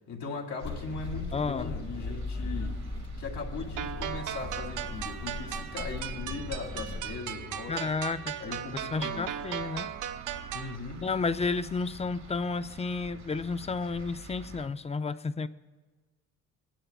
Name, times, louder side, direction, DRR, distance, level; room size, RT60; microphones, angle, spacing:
voice 1, 0.1-2.8 3.2-7.9 8.4-9.3 10.5-11.0, left 4 dB, 70° left, 0 dB, 2.3 m, -39 dB
sound 1, 0.6-7.2, left 3 dB, 35° left, 1.1 m, -38 dB
sound 2, 0.6-14.7, right 3 dB, 60° right, 1.7 m, -48 dB
voice 2, 1.3-1.8 7.7-8.3 8.9-9.9 11.0-15.5, left 4 dB, 20° left, 13 dB, 0.4 m, -31 dB
sound 3, 3.8-10.8, right 10 dB, 90° right, 0.5 m, -37 dB
25.0 x 10.0 x 2.4 m, 1.3 s
cardioid pair, 90°, 30 cm